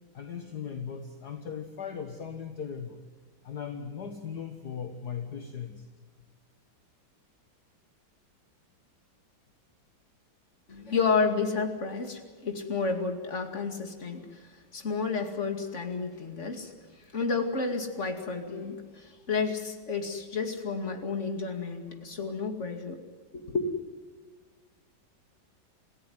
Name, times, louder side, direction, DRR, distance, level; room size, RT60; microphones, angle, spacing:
voice 1, 0.1-3.0 3.4-5.9, left 7 dB, 55° left, 5 dB, 2.0 m, -38 dB
voice 2, 10.7-23.0 23.3-23.7, left 4 dB, 35° left, 5 dB, 2.7 m, -31 dB
27.0 x 16.0 x 9.6 m, 1.4 s
omnidirectional pair, 2.1 m